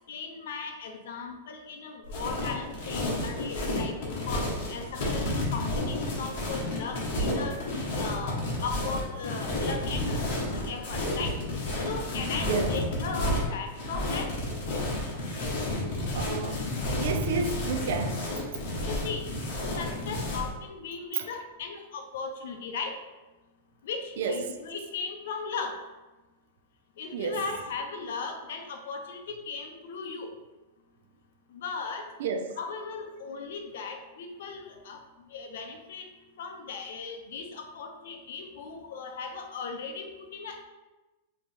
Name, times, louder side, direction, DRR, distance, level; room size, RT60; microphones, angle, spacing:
voice 1, 0.1-7.6 8.0-11.4 11.9-14.3 18.9-19.3 19.8-23.0 23.8-25.8 27.0-30.3 31.5-32.1 32.6-35.0 35.3-36.1 36.4-40.6, left 5 dB, 65° left, 0.7 m, -37 dB
sound 1, 2.1-20.5, left 1 dB, 45° left, 1.4 m, -31 dB
voice 2, 12.4-12.8 16.1-16.6 17.0-18.4 21.1-21.3 24.2-24.5 27.1-27.4 32.2-32.5, right 5 dB, 60° right, 0.5 m, -30 dB
5.0 x 2.9 x 3.5 m
supercardioid pair, 170°, 0 cm